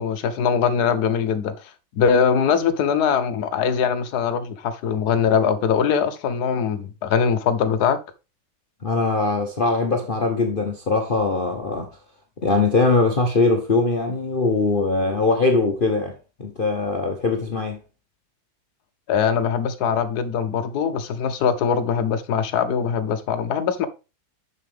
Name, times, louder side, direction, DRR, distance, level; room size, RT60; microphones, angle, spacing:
voice 1, 0.0-1.5 1.9-8.0 19.1-23.9, left 7 dB, 65° left, 1.2 m, -22 dB
voice 2, 8.8-11.9 12.4-16.1 16.4-17.8, left 3 dB, 35° left, 0.9 m, -21 dB
6.7 x 6.7 x 3.4 m
omnidirectional pair, 2.1 m